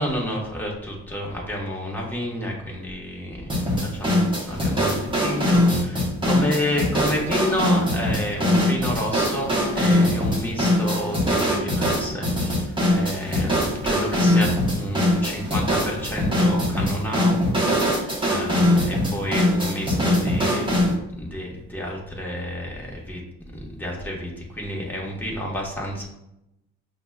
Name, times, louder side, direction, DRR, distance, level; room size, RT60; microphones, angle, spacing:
voice 1, 0.0-3.6 3.8-23.2 23.5-26.1, equal, 5° left, -3 dB, 1.2 m, -30 dB
sound 1, 3.5-21.0, left 1 dB, 15° right, 1.1 m, -22 dB
5.8 x 2.3 x 2.3 m, 0.86 s
cardioid pair, 90°, 30 cm